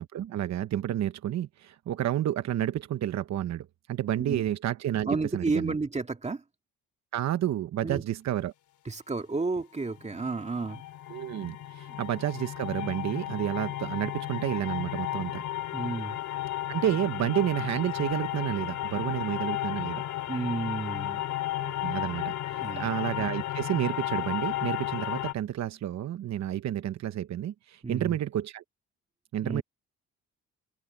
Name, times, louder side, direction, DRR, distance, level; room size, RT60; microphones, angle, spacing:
voice 1, 0.0-5.8 7.1-8.5 11.1-15.4 16.7-20.0 21.6-22.3 22.8-28.6 29.3-29.6, right 12 dB, 65° right, 1.0 m, -30 dB
voice 2, 4.2-4.5 5.1-6.4 7.8-8.0 8.9-10.8 11.9-12.0 15.7-16.2 20.3-21.3 22.6-22.9 27.8-28.2 29.4-29.6, right 3 dB, 20° right, 2.0 m, -32 dB
sound 1, 10.0-25.3, left 13 dB, 75° left, 3.3 m, -33 dB
open air
cardioid pair, 90°, 30 cm